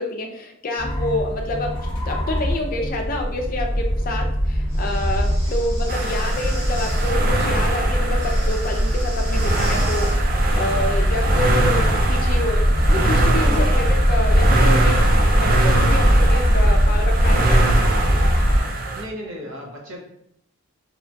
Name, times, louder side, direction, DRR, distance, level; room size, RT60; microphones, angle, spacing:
voice 1, 0.0-10.2 10.6-15.0 15.4-17.6, left 2 dB, 40° left, 2 dB, 0.4 m, -28 dB
sound 1, 0.8-18.6, equal, 20° left, 0.9 m, -20 dB
Breathing, 4.7-7.2 8.1-10.2, equal, 15° right, 0.8 m, -39 dB
sound 2, 5.9-19.0, right 2 dB, 40° right, 0.3 m, -24 dB
voice 2, 19.0-20.0, equal, 65° right, -1 dB, 0.8 m, -36 dB
2.8 x 2.2 x 2.6 m, 0.77 s
head